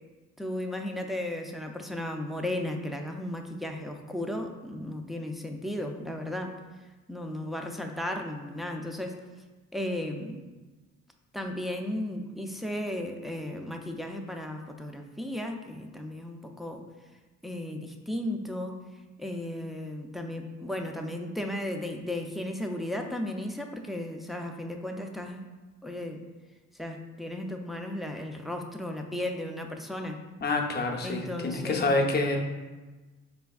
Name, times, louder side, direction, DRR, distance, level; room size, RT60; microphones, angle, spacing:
voice 1, 0.4-6.6 7.1-9.2 9.7-10.4 11.3-16.8 17.4-18.8 19.2-25.5 25.8-26.2 26.8-30.2 31.0-32.0, left 1 dB, ahead, 2 dB, 0.4 m, -35 dB
voice 2, 30.4-32.4, left 2 dB, 35° left, 1 dB, 0.6 m, -27 dB
4.9 x 3.4 x 2.3 m, 1.2 s
cardioid pair, 90°, 30 cm